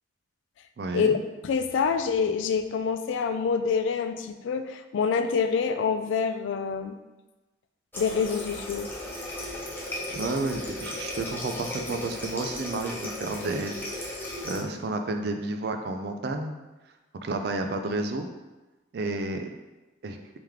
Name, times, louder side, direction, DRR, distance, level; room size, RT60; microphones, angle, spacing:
voice 1, 0.8-1.2 10.1-16.5 17.2-18.3 18.9-19.5 20.0-20.2, right 2 dB, 55° right, 5 dB, 0.3 m, -31 dB
voice 2, 1.4-6.9 8.0-8.9, left 6 dB, 75° left, 8 dB, 0.3 m, -26 dB
Water tap faucet, 7.9-14.6, left 1 dB, 10° left, 0.5 m, -36 dB
3.4 x 3.0 x 3.5 m, 1.1 s
head